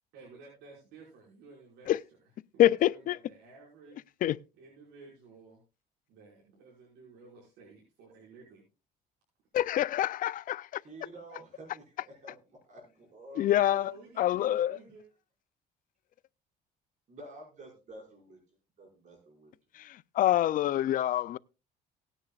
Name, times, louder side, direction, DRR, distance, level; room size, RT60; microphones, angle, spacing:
voice 1, 0.1-2.0 2.5-4.0 4.5-5.6 6.1-8.7 13.7-15.0, right 4 dB, 85° right, 5.5 m, -53 dB
voice 2, 2.6-3.2 4.2-4.4 9.5-10.8 13.4-13.9 14.2-14.7 19.8-21.4, left 13 dB, 55° left, 0.5 m, -26 dB
voice 3, 10.8-13.8 17.1-18.4 18.8-19.5, right 1 dB, 45° right, 5.9 m, -50 dB
18.0 x 10.0 x 2.4 m
cardioid pair, 110°, 17 cm